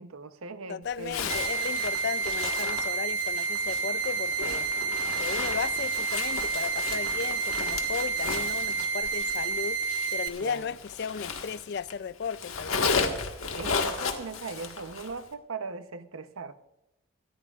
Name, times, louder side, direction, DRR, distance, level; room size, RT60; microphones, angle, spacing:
voice 1, 0.0-1.3 10.4-10.7 13.6-16.5, right 4 dB, 85° right, 0.8 m, -39 dB
voice 2, 0.7-4.7 5.2-9.8 10.1-13.0, left 6 dB, 50° left, 0.3 m, -35 dB
Zipper (clothing), 1.0-11.9 12.2-15.2, left 5 dB, 90° left, 1.6 m, -34 dB
sound 1, 1.3-10.3, right 4 dB, 20° right, 0.7 m, -30 dB
25.5 x 13.5 x 2.4 m
head